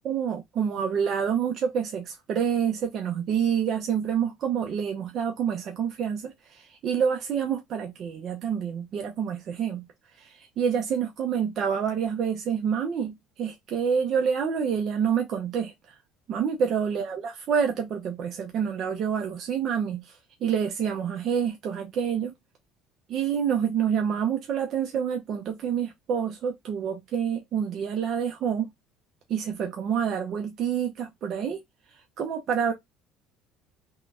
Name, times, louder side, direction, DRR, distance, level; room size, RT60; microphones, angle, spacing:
voice 1, 0.0-9.8 10.2-15.7 16.3-22.3 23.1-28.7 29.3-31.6 32.2-32.7, right 7 dB, 40° right, 0.6 m, -27 dB
3.7 x 2.2 x 2.4 m
cardioid pair, 155°, 0 cm